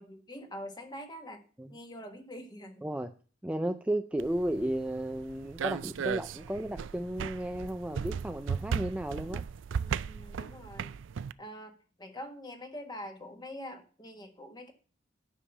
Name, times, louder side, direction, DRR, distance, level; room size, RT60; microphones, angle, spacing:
voice 1, 0.0-1.4 1.7-2.8 9.8-10.9 11.4-14.7, equal, 25° left, 5 dB, 1.5 m, -44 dB
voice 2, 2.8-3.1 3.4-9.4, right 1 dB, 5° right, 7 dB, 0.4 m, -34 dB
sound 1, 4.2-11.3, right 7 dB, 85° right, 0.4 m, -36 dB
10.5 x 5.6 x 7.0 m, 0.40 s
head